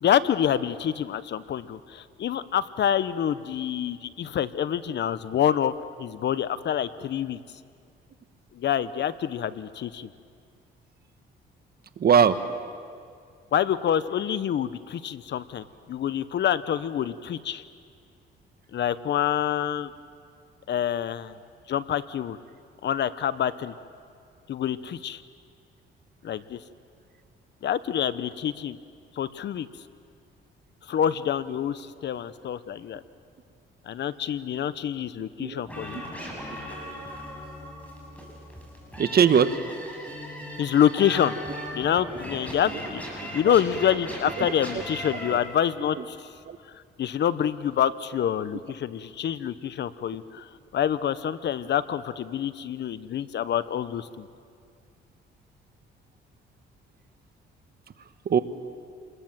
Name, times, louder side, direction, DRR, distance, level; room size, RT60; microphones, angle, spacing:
voice 1, 0.0-5.7 6.0-7.4 8.5-10.1 13.5-17.6 18.7-19.9 20.7-21.4 21.7-22.4 22.8-23.7 24.5-25.2 26.2-26.6 27.6-28.8 29.2-29.7 30.9-33.0 33.8-36.0 40.6-41.4 41.7-46.3 47.0-54.3, left 9 dB, 60° left, 15 dB, 0.9 m, -27 dB
voice 2, 12.0-12.4 35.4-35.6 39.0-39.5 43.4-43.5 44.4-44.5 46.5-46.6 58.2-58.4, right 7 dB, 50° right, 11 dB, 1.3 m, -20 dB
sound 1, 35.7-45.4, equal, 5° left, 7.6 m, -38 dB
28.0 x 21.5 x 7.5 m, 2.2 s
cardioid pair, 90°, 20 cm